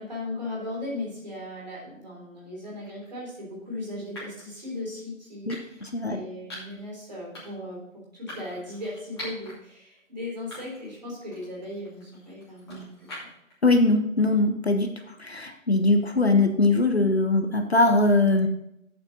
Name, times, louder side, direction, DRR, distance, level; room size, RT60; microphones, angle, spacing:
voice 1, 0.0-13.3, left 1 dB, 30° right, -4 dB, 3.4 m, -37 dB
sound 1, 2.8-3.1 4.1-4.5 5.5-5.9 6.5-6.8 7.3-7.7 8.3-9.5 10.0-10.1 10.5-11.0 11.3-13.5, left 1 dB, 20° left, 2.6 m, -43 dB
voice 2, 5.5-6.2 13.6-14.9 15.2-18.5, left 2 dB, 50° left, 5 dB, 1.0 m, -21 dB
8.5 x 7.7 x 4.0 m, 0.79 s
figure-of-eight pair, 175°, 40 cm